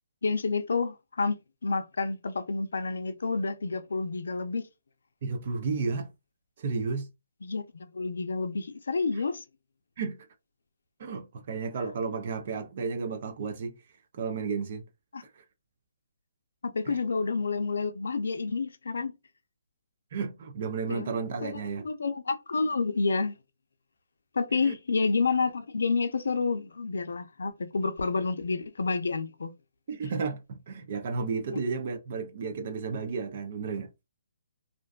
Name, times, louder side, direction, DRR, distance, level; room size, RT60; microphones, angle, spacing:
voice 1, 0.2-4.7 7.4-9.4 15.1-15.2 16.6-19.1 20.9-21.1 21.4-23.4 24.3-29.5, left 4 dB, 80° left, 0.5 m, -29 dB
voice 2, 5.2-6.1 6.6-7.1 10.0-10.3 11.0-13.8 14.1-14.8 15.2-15.4 16.9-17.0 20.1-21.8 24.6-24.8 29.9-33.9, right 4 dB, 45° right, 0.5 m, -33 dB
2.5 x 2.2 x 2.4 m
hypercardioid pair, 155°, 0 cm